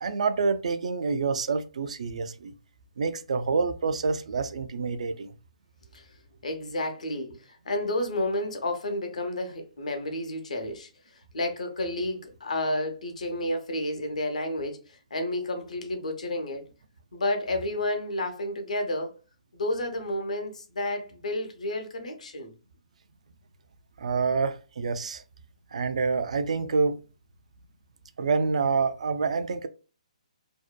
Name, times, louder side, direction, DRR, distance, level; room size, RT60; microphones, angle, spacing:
voice 1, 0.0-2.5 3.0-5.4 24.0-25.2 25.7-27.0 28.2-29.7, right 4 dB, 70° right, 0.3 m, -27 dB
voice 2, 5.9-16.6 17.1-19.1 19.5-22.5, left 1 dB, 75° left, 0.7 m, -31 dB
2.7 x 2.1 x 2.2 m
hypercardioid pair, 140°, 4 cm